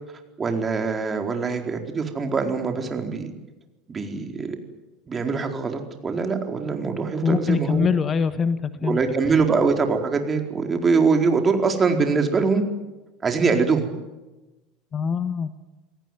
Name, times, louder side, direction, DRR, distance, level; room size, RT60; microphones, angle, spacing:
voice 1, 0.4-3.3 3.9-4.6 5.1-7.9 8.8-12.6 13.2-13.9, right 4 dB, 25° right, 4 dB, 4.4 m, -23 dB
voice 2, 7.2-9.0 14.9-15.5, left 6 dB, 30° left, 13 dB, 1.4 m, -23 dB
27.5 x 18.0 x 9.4 m, 1.1 s
figure-of-eight pair, 75°, 0 cm